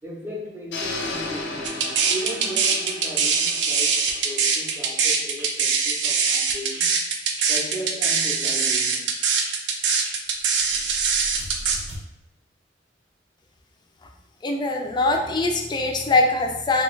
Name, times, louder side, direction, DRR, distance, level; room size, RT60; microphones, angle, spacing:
voice 1, 0.0-7.0 7.5-9.1, equal, 10° right, -3 dB, 0.6 m, -36 dB
sound 1, 0.7-4.7, left 2 dB, 75° left, 0.6 m, -34 dB
sound 2, 1.6-11.8, right 5 dB, 65° right, 0.4 m, -22 dB
sound 3, 4.1-12.0, right 1 dB, 90° right, 0.9 m, -42 dB
voice 2, 14.4-16.8, left 2 dB, 25° left, 3 dB, 0.3 m, -22 dB
3.2 x 2.3 x 3.1 m, 0.88 s
head